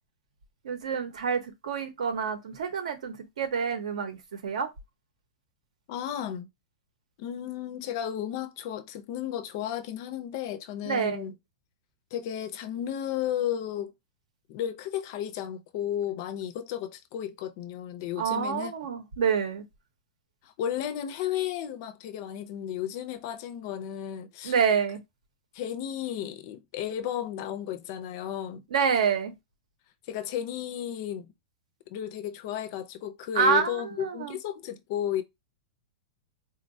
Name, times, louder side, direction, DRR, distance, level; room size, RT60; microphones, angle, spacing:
voice 1, 0.6-4.7 10.8-11.2 18.2-19.6 24.4-25.0 28.7-29.3 33.3-34.4, right 6 dB, 75° right, 0.8 m, -27 dB
voice 2, 5.9-6.5 7.2-11.3 12.1-13.9 14.5-18.7 20.4-24.5 25.5-28.6 30.1-31.3 31.9-35.2, left 10 dB, 30° left, 0.4 m, -33 dB
3.8 x 2.1 x 2.6 m
supercardioid pair, 180°, 4 cm